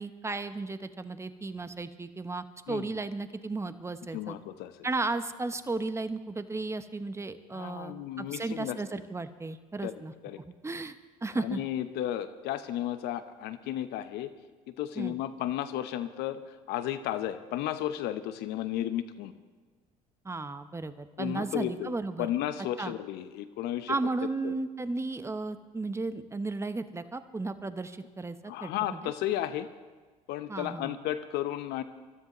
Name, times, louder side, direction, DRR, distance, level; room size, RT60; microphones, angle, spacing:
voice 1, 0.0-4.4 4.8-10.1 10.6-11.0 11.2-11.6 15.0-15.1 20.2-22.3 22.8-22.9 23.9-29.0 30.5-30.9, right 3 dB, 15° right, 11 dB, 0.9 m, -34 dB
voice 2, 4.1-4.7 7.5-8.8 9.8-9.9 10.2-10.4 11.3-14.3 14.7-19.3 21.2-23.9 24.4-24.5 28.5-29.7 30.3-31.8, left 12 dB, 65° left, 11 dB, 1.0 m, -33 dB
24.0 x 13.0 x 3.1 m, 1.4 s
hypercardioid pair, 65°, 18 cm